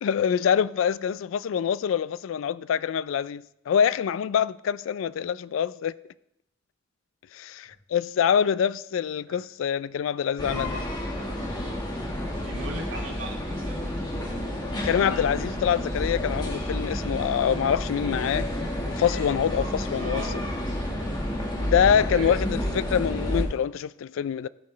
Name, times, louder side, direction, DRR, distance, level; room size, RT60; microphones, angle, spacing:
voice 1, 0.0-5.9 7.3-10.9 14.8-18.5 19.0-20.2 21.5-24.5, left 8 dB, 80° left, 0.3 m, -25 dB
sound 1, 10.4-23.4, left 1 dB, 20° left, 1.5 m, -30 dB
voice 2, 12.4-13.8 20.0-20.3 22.1-22.4, right 2 dB, 85° right, 2.5 m, -37 dB
14.5 x 6.5 x 3.2 m
head